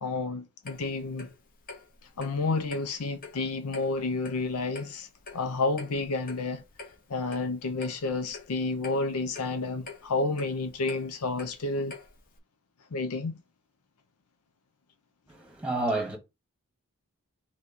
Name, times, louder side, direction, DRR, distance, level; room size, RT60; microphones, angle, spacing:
voice 1, 0.0-1.3 2.2-5.1 5.3-6.6 7.1-11.9 12.9-13.4, left 3 dB, 90° left, 0.6 m, -30 dB
Clock, 0.6-12.4, left 3 dB, 40° left, 0.8 m, -47 dB
voice 2, 15.3-16.2, right 2 dB, 5° right, 1.1 m, -30 dB
4.0 x 3.1 x 4.0 m
head